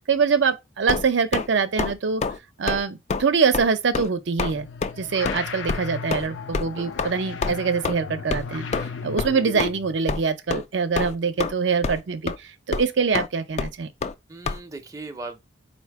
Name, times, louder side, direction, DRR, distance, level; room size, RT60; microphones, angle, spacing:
voice 1, 0.0-2.2 2.6-4.7 5.0-13.9, right 5 dB, 70° right, 0.5 m, -24 dB
sound 1, 0.9-1.5 1.8-1.9 2.2-2.4 2.7-2.8 3.1-3.2 3.5-3.7 3.9-4.1 4.4-4.5 4.8-4.9 5.3-5.4 5.7-5.8 6.1-6.3 6.5-6.7 7.0-7.1 7.4-7.5 7.8-7.9 8.3-8.5 8.7-8.9 9.2-9.3 9.6-9.7 10.1-10.2 10.5-10.7 11.0-11.5 11.8-12.0 12.3-12.4 12.7-12.9 13.1-13.3 13.6-13.7 14.0-14.1 14.5-14.6, left 4 dB, 35° left, 0.3 m, -26 dB
sound 2, 4.5-10.0, left 5 dB, 85° left, 0.6 m, -35 dB
voice 2, 6.5-7.0 14.3-15.4, right 3 dB, 15° right, 0.5 m, -39 dB
4.3 x 2.6 x 4.5 m
head